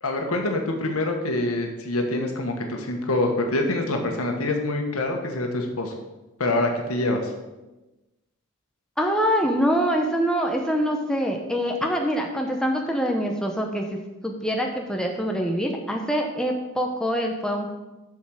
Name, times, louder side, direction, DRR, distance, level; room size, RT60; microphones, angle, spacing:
voice 1, 0.0-5.9 6.4-7.3, left 2 dB, 75° left, 3 dB, 1.5 m, -25 dB
voice 2, 9.0-13.8 14.2-17.7, equal, 5° left, 1 dB, 0.8 m, -24 dB
7.2 x 6.5 x 6.4 m, 1.1 s
head